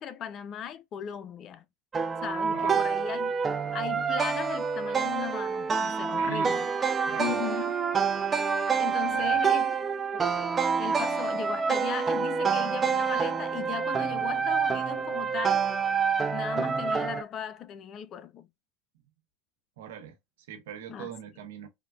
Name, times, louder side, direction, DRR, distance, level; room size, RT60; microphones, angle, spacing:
voice 1, 0.0-1.6 2.2-3.3 3.7-6.7 7.2-7.7 8.8-9.7 10.1-10.4 10.8-15.7 16.3-18.5 20.9-21.1, left 9 dB, 45° left, 0.4 m, -37 dB
sound 1, 1.9-17.2, right 6 dB, 25° right, 0.4 m, -27 dB
voice 2, 2.4-2.9 6.1-6.5 7.0-7.4 9.1-9.4 19.8-20.2 20.5-21.7, right 8 dB, 80° right, 0.8 m, -40 dB
3.5 x 2.2 x 2.2 m
hypercardioid pair, 90°, 0 cm